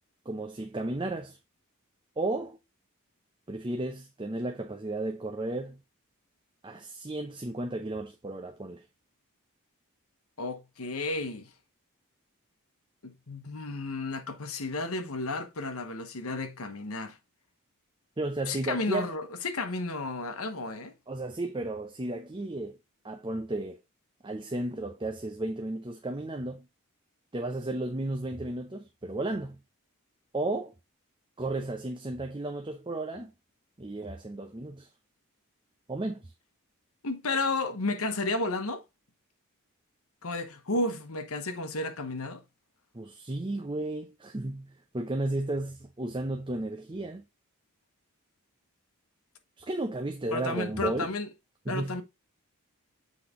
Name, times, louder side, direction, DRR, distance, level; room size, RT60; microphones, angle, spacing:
voice 1, 0.3-1.4 2.2-2.6 3.5-5.8 6.6-8.8 18.2-19.1 21.1-22.8 23.0-23.8 24.2-26.7 27.3-29.6 30.3-30.7 31.4-33.3 33.8-34.9 35.9-36.3 42.9-47.2 49.6-51.1 51.7-52.0, right 2 dB, 20° right, 0.6 m, -33 dB
voice 2, 10.4-11.5 13.0-17.2 18.5-20.9 37.0-38.8 40.2-42.4 50.3-51.3 51.7-52.0, left 2 dB, 70° left, 1.2 m, -32 dB
7.7 x 4.2 x 3.7 m
head